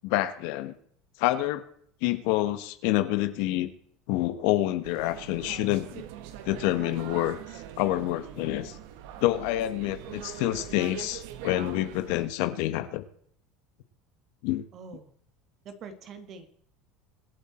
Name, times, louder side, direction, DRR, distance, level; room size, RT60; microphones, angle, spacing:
voice 1, 0.0-0.7 1.2-1.6 2.0-3.7 4.1-6.0 6.4-7.4 7.8-8.8 9.2-13.0 14.4-14.6, left 15 dB, 75° left, 10 dB, 1.5 m, -27 dB
sound 1, 4.8-12.3, right 10 dB, 75° right, 1.6 m, -42 dB
voice 2, 14.7-15.1 15.6-16.5, right 5 dB, 45° right, 8 dB, 2.2 m, -44 dB
25.0 x 8.3 x 4.5 m, 0.62 s
supercardioid pair, 125°, 0 cm